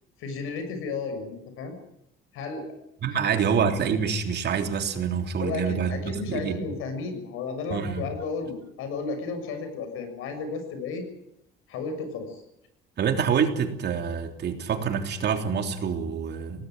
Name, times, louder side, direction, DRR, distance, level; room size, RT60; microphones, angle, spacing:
voice 1, 0.2-1.8 2.3-2.8 3.1-3.2 5.4-11.0 11.7-12.4, left 4 dB, 80° left, 8 dB, 6.8 m, -33 dB
voice 2, 3.0-6.6 7.7-8.0 13.0-16.7, right 7 dB, 50° right, 6 dB, 3.3 m, -26 dB
19.0 x 19.0 x 9.2 m, 0.80 s
cardioid pair, 120°, 21 cm